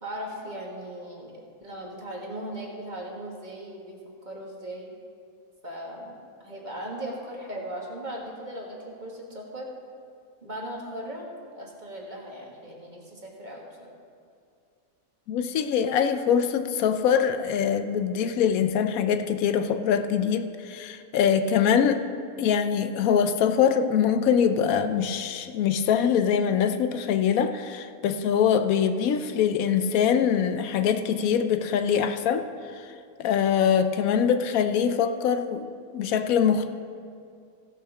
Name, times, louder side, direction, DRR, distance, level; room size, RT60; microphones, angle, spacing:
voice 1, 0.0-4.9 5.6-6.1 6.4-9.7 10.4-13.9, right 1 dB, 35° right, -2 dB, 1.7 m, -38 dB
voice 2, 15.3-22.0 22.4-32.5 33.2-36.7, left 7 dB, 80° left, 9 dB, 1.0 m, -23 dB
15.5 x 5.8 x 5.9 m, 2.3 s
omnidirectional pair, 1.5 m